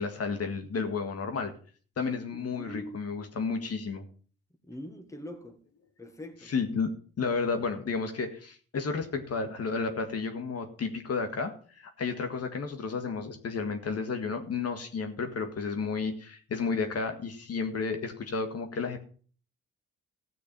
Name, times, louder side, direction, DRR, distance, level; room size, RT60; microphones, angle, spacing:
voice 1, 0.0-1.5 2.0-4.0 6.4-6.9 7.2-19.0, left 4 dB, 55° left, 1.8 m, -32 dB
voice 2, 2.1-3.0 4.7-5.6 6.0-6.5, equal, 10° left, 1.8 m, -43 dB
15.5 x 6.3 x 5.4 m
cardioid pair, 80°, 29 cm